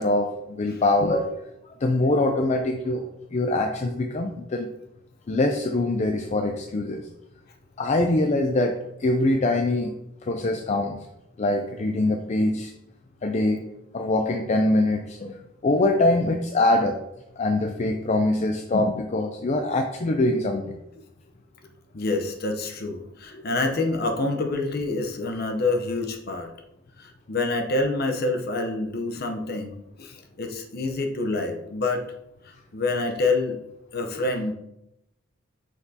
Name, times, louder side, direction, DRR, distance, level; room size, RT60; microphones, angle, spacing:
voice 1, 0.0-1.4 1.8-4.7 5.3-7.0 7.8-10.0 10.3-11.0 11.4-12.7 13.2-13.6 13.9-15.4 15.6-17.0 17.4-20.8 23.3-23.4, left 2 dB, 35° left, 4 dB, 0.4 m, -23 dB
voice 2, 21.9-26.5 27.0-32.0 32.4-33.6 33.9-34.5, left 2 dB, 50° left, 4 dB, 0.8 m, -27 dB
5.8 x 5.8 x 2.8 m, 0.84 s
head